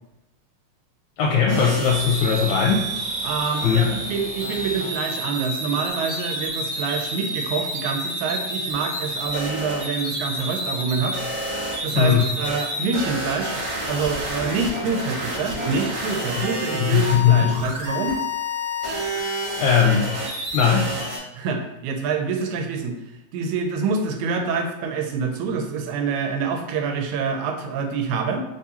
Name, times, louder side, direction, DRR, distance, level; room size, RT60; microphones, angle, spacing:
voice 1, 1.2-2.9 3.6-3.9 11.9-12.2 16.8-17.7 19.1-20.1 20.5-20.9, left 7 dB, 85° left, -3 dB, 2.0 m, -19 dB
sound 1, 1.5-21.2, equal, 45° right, 1.8 m, -29 dB
voice 2, 3.2-11.2 11.8-18.2 21.4-23.0 23.3-28.4, right 5 dB, 85° right, 4 dB, 2.0 m, -26 dB
4.3 x 3.6 x 2.8 m, 0.94 s
omnidirectional pair, 3.3 m